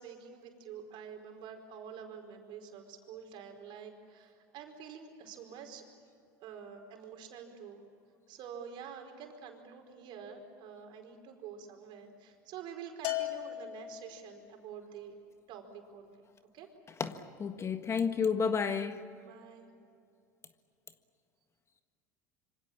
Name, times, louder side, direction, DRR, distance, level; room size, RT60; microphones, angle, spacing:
voice 1, 0.0-5.8 6.4-7.8 8.3-15.2 15.5-16.2 16.5-16.7 19.2-19.7, right 7 dB, 55° right, 4 dB, 4.7 m, -47 dB
Bell, 13.0-14.4, left 14 dB, 60° left, 3.6 m, -37 dB
voice 2, 17.0-19.0, left 6 dB, 30° left, 9 dB, 1.6 m, -31 dB
26.5 x 25.0 x 7.5 m, 2.4 s
hypercardioid pair, 85°, 10 cm